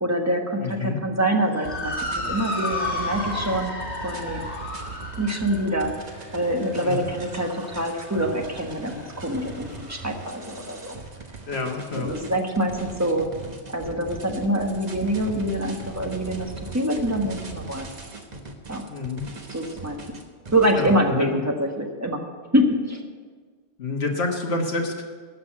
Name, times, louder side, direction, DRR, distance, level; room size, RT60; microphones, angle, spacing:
voice 1, 0.0-3.7 4.0-4.4 5.2-5.9 6.3-11.0 11.9-13.3 13.7-17.9 18.7-18.9 19.5-20.0 20.5-22.2 22.5-23.0, right 1 dB, 15° right, 2 dB, 1.3 m, -25 dB
voice 2, 0.6-1.0 6.8-7.0 11.5-12.1 18.9-19.2 20.7-21.4 23.8-25.0, left 3 dB, 70° left, 1 dB, 1.7 m, -28 dB
Motor vehicle (road) / Siren, 1.4-10.0, left 1 dB, 90° left, 3.7 m, -34 dB
sound 1, 1.6-20.9, right 3 dB, 40° right, 1.2 m, -39 dB
13.0 x 6.0 x 8.6 m, 1.5 s
omnidirectional pair, 1.1 m